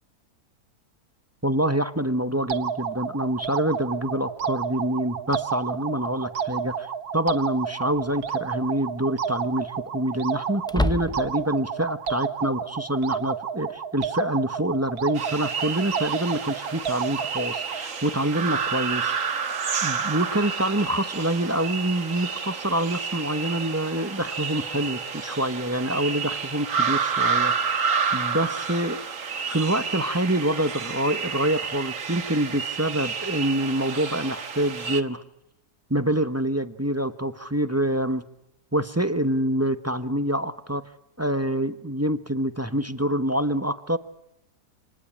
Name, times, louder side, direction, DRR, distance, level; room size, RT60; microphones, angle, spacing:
voice 1, 1.4-6.9 7.1-19.4 19.8-29.0 29.5-35.2 35.9-38.2 38.7-40.8 41.2-44.0, right 1 dB, 10° right, 11 dB, 1.0 m, -26 dB
sound 1, 2.5-17.9, right 7 dB, 75° right, 1.7 m, -31 dB
sound 2, 6.1-6.2 8.0-8.4 8.7-8.8 10.6-11.5, left 1 dB, 5° left, 0.4 m, -28 dB
sound 3, 15.2-35.0, right 6 dB, 55° right, 1.8 m, -30 dB
27.0 x 19.5 x 8.6 m, 0.83 s
omnidirectional pair, 1.6 m